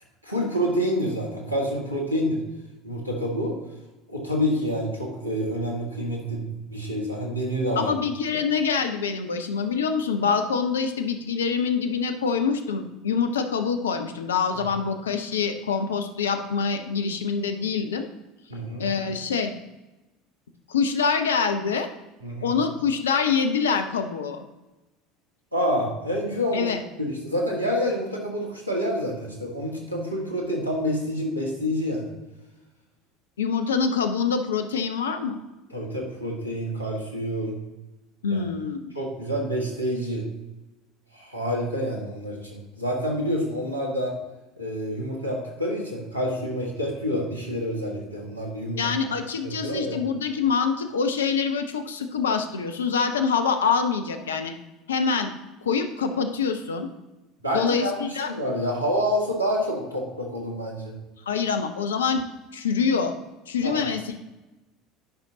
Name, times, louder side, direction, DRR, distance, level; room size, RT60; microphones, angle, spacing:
voice 1, 0.2-2.4 2.8-3.6 4.1-7.9 18.5-18.9 22.2-22.6 25.5-26.7 27.0-32.1 35.7-37.6 38.3-38.4 38.9-40.3 41.1-44.1 44.6-48.8 49.4-50.0 57.4-61.0 63.6-63.9, equal, 90° right, -2 dB, 1.6 m, -28 dB
voice 2, 7.8-18.1 18.8-19.5 20.7-21.9 22.4-24.5 26.5-26.8 33.4-35.4 38.2-38.8 48.8-54.5 54.9-55.3 55.6-56.9 57.5-58.3 61.3-62.2 62.5-63.1 63.5-64.2, left 5 dB, 75° left, 8 dB, 0.7 m, -25 dB
11.0 x 5.9 x 2.7 m, 1.1 s
figure-of-eight pair, 70°, 0 cm